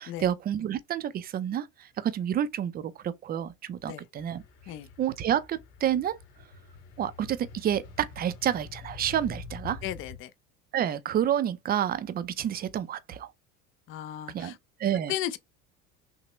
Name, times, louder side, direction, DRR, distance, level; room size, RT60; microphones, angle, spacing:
voice 1, 0.0-4.4 5.0-6.2 7.0-9.8 10.7-13.3 14.3-14.5 14.8-15.1, right 10 dB, 25° right, 0.4 m, -29 dB
sound 1, 4.2-10.2, left 5 dB, 70° left, 2.8 m, -46 dB
voice 2, 9.8-10.3 13.9-14.6 15.1-15.4, left 12 dB, 35° left, 0.4 m, -35 dB
5.9 x 2.1 x 3.0 m
supercardioid pair, 125°, 36 cm